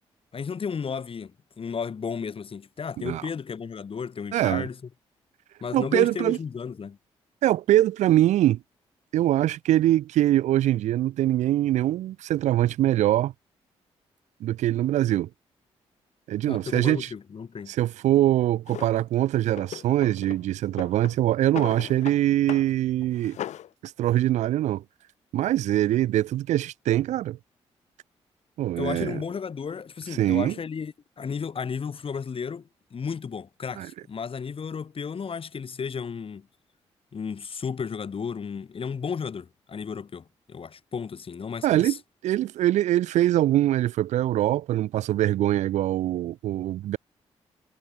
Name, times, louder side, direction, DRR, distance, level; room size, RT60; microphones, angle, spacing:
voice 1, 0.3-1.3 1.6-4.8 5.6-7.0 16.5-17.7 28.8-36.5 37.1-42.0, left 6 dB, 50° left, 7.3 m, -33 dB
voice 2, 4.3-4.6 5.7-6.4 7.4-8.6 9.1-13.3 14.4-15.3 16.3-17.1 17.7-23.4 23.8-24.8 25.3-27.4 28.6-29.2 30.2-30.5 33.8-33.9 41.6-42.0 42.2-47.0, right 13 dB, 85° right, 3.1 m, -23 dB
Drawer open or close, 18.7-18.9 19.5-20.4 20.7-22.2 22.5-22.7 23.0-23.7, left 11 dB, 80° left, 5.9 m, -37 dB
supercardioid pair, 65°, 12 cm